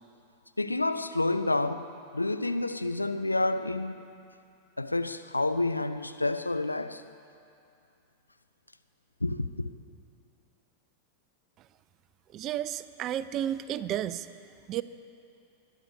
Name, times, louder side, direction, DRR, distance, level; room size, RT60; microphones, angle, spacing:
voice 1, 0.6-1.9 2.1-4.0 4.8-7.0 9.2-9.7, left 2 dB, 85° left, 0.5 m, -29 dB
voice 2, 12.3-14.3 14.7-14.8, right 11 dB, 35° right, 0.5 m, -32 dB
20.5 x 11.0 x 4.9 m
figure-of-eight pair, 90°, 0 cm